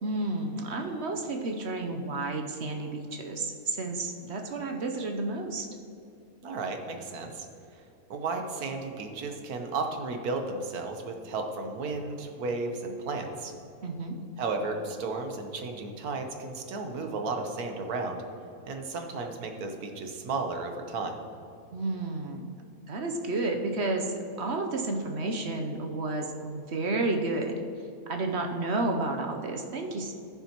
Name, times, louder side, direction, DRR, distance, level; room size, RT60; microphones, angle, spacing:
voice 1, 0.0-5.7 13.8-14.2 21.7-22.5 22.9-27.6 28.1-30.1, right 2 dB, 55° right, 3 dB, 0.9 m, -31 dB
voice 2, 6.4-7.5 8.1-13.5 14.4-18.2 18.6-21.2, right 3 dB, 85° right, 4 dB, 1.5 m, -33 dB
15.5 x 6.8 x 2.9 m, 2.6 s
omnidirectional pair, 1.5 m